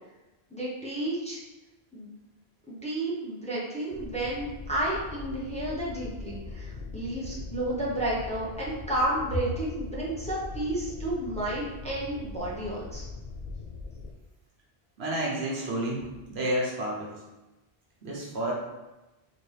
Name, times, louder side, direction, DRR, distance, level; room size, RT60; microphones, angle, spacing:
voice 1, 0.5-1.4 1.9-2.1 2.7-13.0, right 1 dB, 5° left, -7 dB, 0.9 m, -31 dB
sound 1, 3.9-14.1, left 3 dB, 50° left, 0.5 m, -41 dB
voice 2, 15.0-16.0 16.3-17.1 18.0-18.5, right 1 dB, 80° right, -4 dB, 1.3 m, -30 dB
4.2 x 3.1 x 3.4 m, 1.1 s
omnidirectional pair, 1.1 m